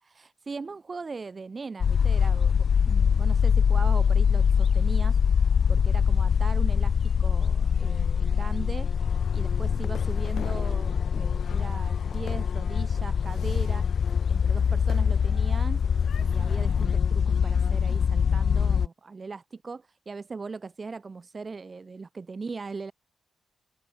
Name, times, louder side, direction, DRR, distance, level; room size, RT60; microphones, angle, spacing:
voice 1, 0.0-15.8 16.1-22.9, right 4 dB, 30° right, 3.6 m, -39 dB
sound 1, 1.8-18.9, left 7 dB, 50° left, 0.4 m, -23 dB
sound 2, 8.9-16.9, left 9 dB, 70° left, 7.8 m, -46 dB
open air
wide cardioid pair, 175°, 0 cm